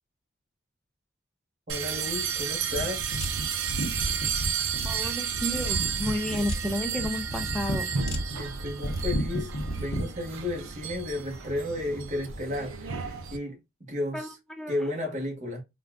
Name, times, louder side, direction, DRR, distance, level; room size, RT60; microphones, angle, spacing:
voice 1, 1.7-3.1 8.4-14.3 14.7-15.6, left 2 dB, 35° right, 1.1 m, -33 dB
sound 1, 1.7-13.4, right 7 dB, 75° right, 0.5 m, -32 dB
sound 2, 2.7-10.1, right 1 dB, 80° left, 0.9 m, -33 dB
voice 2, 4.8-8.0 14.1-14.9, left 1 dB, 5° left, 0.5 m, -32 dB
3.7 x 2.3 x 2.3 m
head